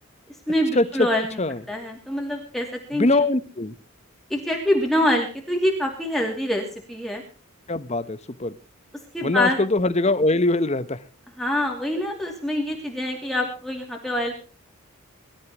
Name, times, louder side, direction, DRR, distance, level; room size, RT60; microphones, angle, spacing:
voice 1, 0.5-1.4 1.7-3.2 4.3-7.2 9.1-9.6 11.4-14.3, left 1 dB, ahead, 0 dB, 2.7 m, -25 dB
voice 2, 2.9-3.7 7.7-8.5 9.2-11.0, left 2 dB, 30° left, 14 dB, 1.0 m, -22 dB
23.5 x 13.5 x 3.1 m, 0.35 s
head